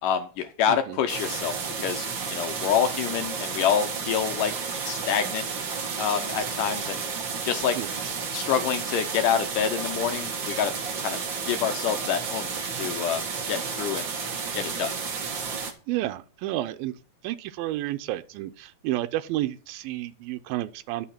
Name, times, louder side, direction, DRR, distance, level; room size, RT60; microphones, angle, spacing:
voice 1, 0.0-4.5 4.9-5.5 6.0-7.0 7.4-7.8 8.3-10.7 11.0-11.2 11.5-14.1 14.6-14.9, left 8 dB, 75° left, 2.1 m, -27 dB
voice 2, 0.7-1.0 4.5-4.6 7.8-8.2 15.9-16.9 17.2-21.1, right 15 dB, 80° right, 2.4 m, -31 dB
sound 1, 1.1-15.7, right 5 dB, 55° right, 1.3 m, -32 dB
11.0 x 5.8 x 5.7 m
omnidirectional pair, 4.3 m